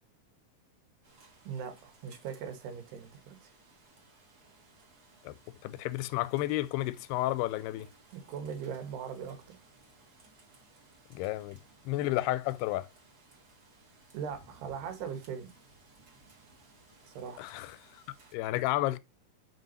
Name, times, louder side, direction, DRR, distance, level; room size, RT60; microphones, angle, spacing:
Rain, 1.0-18.4, right 3 dB, 50° right, 1.1 m, -60 dB
voice 1, 1.5-3.5 8.1-9.6 11.9-12.2 14.1-15.5 17.1-17.5, right 7 dB, 90° right, 3.7 m, -40 dB
voice 2, 5.6-7.9 11.1-11.6 11.9-12.9 17.4-18.0 18.3-19.0, left 16 dB, 90° left, 2.6 m, -32 dB
7.4 x 5.1 x 4.1 m
omnidirectional pair, 4.5 m